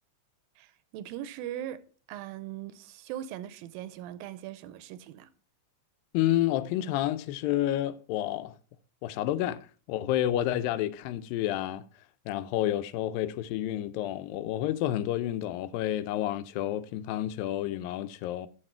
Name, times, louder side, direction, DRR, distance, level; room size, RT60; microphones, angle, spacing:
voice 1, 0.6-1.8 2.1-5.3, right 12 dB, 85° right, 2.4 m, -40 dB
voice 2, 6.1-8.6 9.0-11.9 12.3-18.5, left 13 dB, 85° left, 2.3 m, -30 dB
9.8 x 6.5 x 4.4 m
omnidirectional pair, 4.1 m